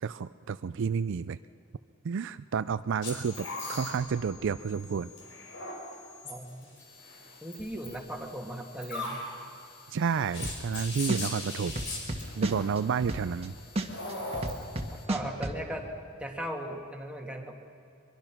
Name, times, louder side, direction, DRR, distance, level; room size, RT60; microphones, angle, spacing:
voice 1, 0.0-1.4 2.0-5.1 9.9-11.7 12.4-13.5, right 6 dB, 60° right, 13 dB, 0.4 m, -30 dB
sound 1, 3.0-15.0, left 2 dB, 60° left, 5.0 m, -41 dB
voice 2, 6.2-6.7 7.4-9.2 15.1-15.8 16.2-17.6, right 1 dB, 5° right, 1 dB, 1.9 m, -37 dB
sound 2, 10.4-10.8 11.1-13.5 13.8-15.6, right 1 dB, 30° right, 1.5 m, -31 dB
23.0 x 22.5 x 6.0 m, 2.7 s
head